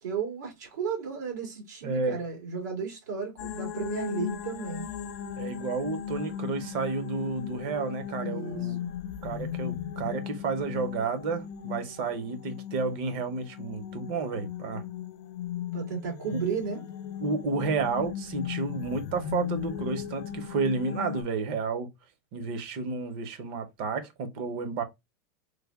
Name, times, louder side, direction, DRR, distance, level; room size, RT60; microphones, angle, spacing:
voice 1, 0.0-4.9 8.2-8.9 15.7-16.8, right 6 dB, 85° right, 2.0 m, -34 dB
voice 2, 1.8-2.2 5.4-8.8 9.2-14.8 17.2-21.9 22.3-24.8, right 4 dB, 40° right, 0.6 m, -31 dB
sound 1, 3.4-21.2, left 9 dB, 65° left, 0.6 m, -37 dB
3.2 x 2.1 x 3.4 m
supercardioid pair, 175°, 9 cm